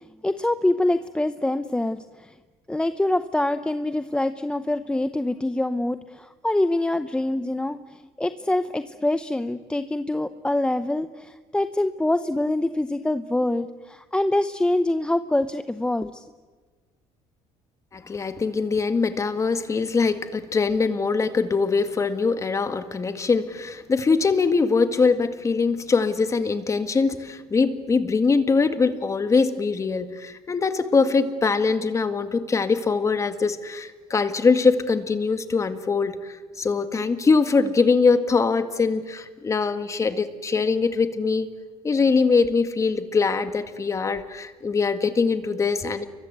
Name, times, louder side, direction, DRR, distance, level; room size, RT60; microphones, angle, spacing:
voice 1, 0.2-2.3 2.7-16.2, left 1 dB, 10° left, 10 dB, 0.8 m, -25 dB
voice 2, 17.9-41.5 41.8-46.1, left 4 dB, 25° left, 9 dB, 2.0 m, -22 dB
29.5 x 23.5 x 8.2 m, 1.4 s
cardioid pair, 120°, 12 cm